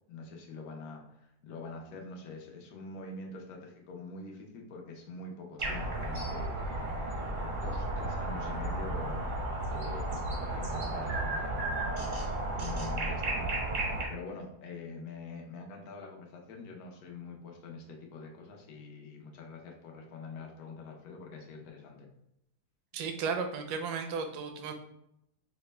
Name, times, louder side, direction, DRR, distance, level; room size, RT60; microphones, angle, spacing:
voice 1, 0.1-6.6 7.6-22.1, left 3 dB, 70° left, 0 dB, 1.3 m, -45 dB
sound 1, 5.6-14.1, right 2 dB, 45° right, 0.6 m, -33 dB
voice 2, 22.9-24.7, right 5 dB, 80° right, 6 dB, 1.1 m, -34 dB
5.0 x 2.1 x 3.2 m, 0.80 s
omnidirectional pair, 1.8 m